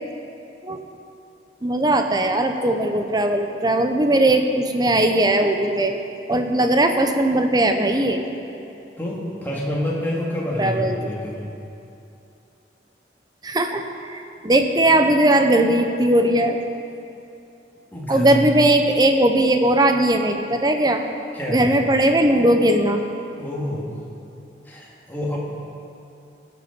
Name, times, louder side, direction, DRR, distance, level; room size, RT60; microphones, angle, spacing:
voice 1, 1.6-5.9 6.3-8.2 10.6-11.0 13.4-16.6 18.1-21.0 21.5-23.0, right 1 dB, 25° right, 6 dB, 0.7 m, -19 dB
voice 2, 9.0-11.5 17.9-18.4 21.3-21.8 23.4-23.9 24.6-25.4, left 1 dB, 10° left, -5 dB, 2.0 m, -27 dB
17.5 x 6.9 x 5.2 m, 2.7 s
head